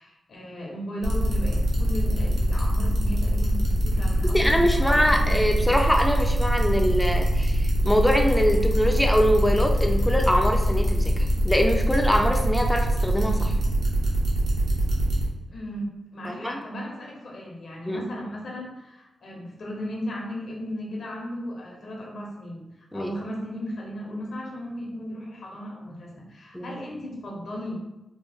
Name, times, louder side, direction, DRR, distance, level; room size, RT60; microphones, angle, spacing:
voice 1, 0.0-4.6 4.9-5.8 15.5-22.7 22.9-27.8, equal, 70° left, -2 dB, 0.9 m, -36 dB
sound 1, 1.0-15.2, equal, 70° right, 1.0 m, -23 dB
voice 2, 4.3-13.5 16.2-16.6 17.9-18.0 22.9-23.1 26.5-26.8, equal, 5° left, 2 dB, 0.4 m, -23 dB
3.0 x 2.1 x 3.5 m, 0.98 s
cardioid pair, 65°, 0 cm